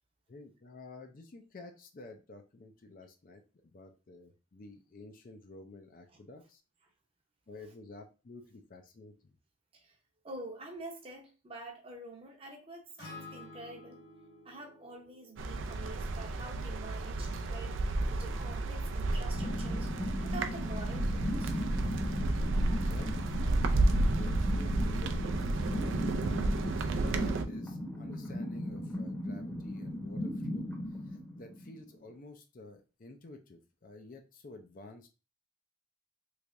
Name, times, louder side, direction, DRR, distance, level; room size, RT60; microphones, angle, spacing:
voice 1, 0.3-6.6 7.5-9.3 22.9-23.2 23.9-26.2 27.0-30.7 31.1-35.1, left 2 dB, 45° left, 0.4 m, -51 dB
voice 2, 10.2-14.0 14.4-19.9 20.2-21.5, right 2 dB, 30° right, 0.7 m, -47 dB
Acoustic guitar, 13.0-17.2, left 2 dB, 65° left, 1.6 m, -52 dB
sound 1, 15.4-27.4, right 2 dB, 75° right, 0.4 m, -31 dB
sound 2, 19.3-32.0, left 1 dB, 10° left, 0.8 m, -38 dB
3.3 x 3.2 x 2.5 m
head